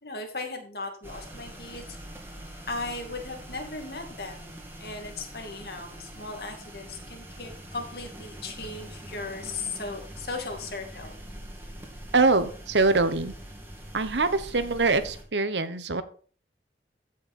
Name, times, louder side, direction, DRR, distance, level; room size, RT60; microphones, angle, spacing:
voice 1, 0.0-2.0 2.7-4.5 4.8-11.2, left 3 dB, 65° left, 3 dB, 2.5 m, -37 dB
sound 1, 1.0-15.2, right 1 dB, 15° right, 2.4 m, -43 dB
voice 2, 12.1-13.3 13.9-16.0, right 3 dB, 90° right, 12 dB, 1.1 m, -24 dB
14.5 x 6.5 x 4.4 m, 0.42 s
head